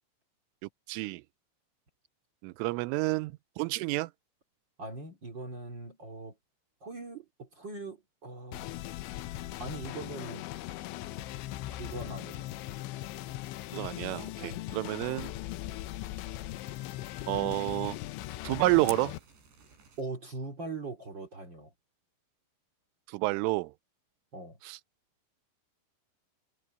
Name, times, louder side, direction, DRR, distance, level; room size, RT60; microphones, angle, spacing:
voice 1, 0.6-1.2 2.4-4.1 13.7-15.3 17.3-18.0 18.4-19.2 23.1-23.7 24.6-24.8, right 22 dB, 90° right, 3.2 m, -30 dB
voice 2, 4.8-6.4 6.8-8.8 9.6-10.5 11.7-12.5 14.4-14.7 20.0-21.7 24.3-24.6, right 3 dB, 35° right, 2.2 m, -41 dB
sound 1, 8.5-19.2, left 15 dB, 80° left, 3.0 m, -39 dB
Fire, 18.9-20.0, right 6 dB, 60° right, 8.5 m, -47 dB
omnidirectional pair, 5.6 m